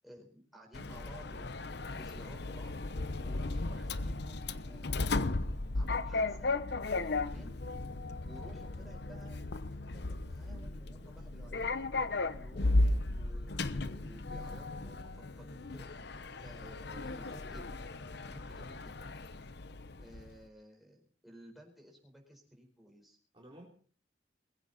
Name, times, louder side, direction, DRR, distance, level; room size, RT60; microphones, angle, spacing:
voice 1, 0.0-2.7 3.2-5.2 5.7-6.5 6.8-7.5 8.2-9.4 9.9-11.9 12.3-15.9 16.4-17.6 18.1-18.9 20.0-23.2, equal, ahead, 0 dB, 4.5 m, -55 dB
Sliding door, 0.7-20.3, left 2 dB, 65° left, 0.9 m, -35 dB
voice 2, 16.6-17.4 23.3-23.7, equal, 30° right, -1 dB, 3.4 m, -54 dB
20.5 x 16.0 x 4.2 m, 0.43 s
head